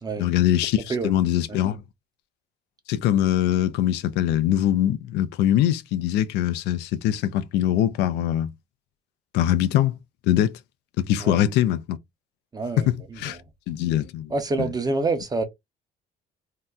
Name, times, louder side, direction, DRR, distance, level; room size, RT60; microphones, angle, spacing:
voice 1, 0.2-1.8 2.9-8.5 9.3-10.0 10.3-10.5 11.0-12.0 13.2-13.4 13.7-14.3, left 12 dB, 85° left, 0.5 m, -22 dB
voice 2, 12.5-13.4 14.3-15.4, right 3 dB, 25° right, 0.7 m, -27 dB
2.8 x 2.2 x 3.6 m
cardioid pair, 110°, 17 cm